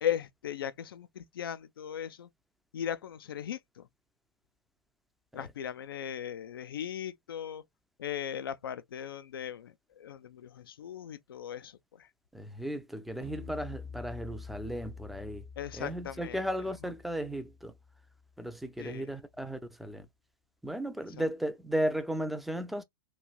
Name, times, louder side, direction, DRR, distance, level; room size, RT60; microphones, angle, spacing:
voice 1, 0.0-2.3 2.7-3.9 5.3-7.6 8.0-12.1 15.6-16.4 16.8-16.9 18.8-19.1 21.2-21.3, left 9 dB, 70° left, 0.4 m, -38 dB
voice 2, 12.3-15.5 15.7-17.7 18.4-20.1 20.6-22.8, right 1 dB, ahead, 0.4 m, -35 dB
sound 1, 13.2-18.6, left 5 dB, 80° right, 0.8 m, -47 dB
3.1 x 2.5 x 2.3 m
hypercardioid pair, 105°, 12 cm